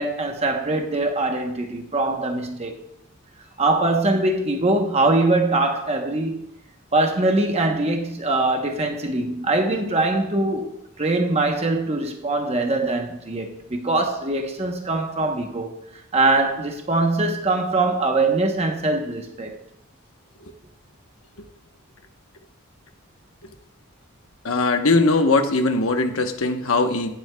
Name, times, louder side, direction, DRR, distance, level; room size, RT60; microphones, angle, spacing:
voice 1, 0.0-2.7 3.6-6.5 6.9-15.7 16.1-19.6, right 2 dB, 30° right, 1.0 m, -22 dB
voice 2, 24.4-27.1, left 3 dB, 90° left, 1.1 m, -20 dB
17.0 x 7.8 x 2.3 m
head